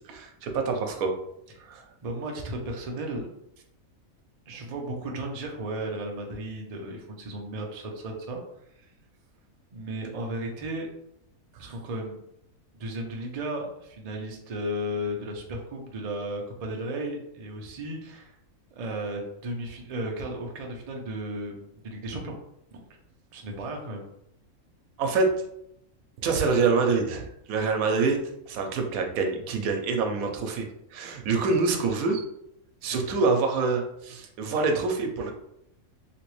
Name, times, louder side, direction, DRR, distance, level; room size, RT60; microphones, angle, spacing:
voice 1, 0.1-1.1 1.6-1.8 25.0-25.3 26.2-28.2 28.5-30.7 30.9-32.3 32.8-35.3, right 4 dB, 85° right, 4 dB, 1.1 m, -26 dB
voice 2, 2.0-3.3 4.5-8.4 8.8-8.9 9.7-10.9 11.6-12.2 12.8-18.3 18.7-22.4 22.7-22.9 23.3-24.1, right 1 dB, 55° right, 1 dB, 0.4 m, -34 dB
3.1 x 3.0 x 3.0 m, 0.78 s
omnidirectional pair, 1.5 m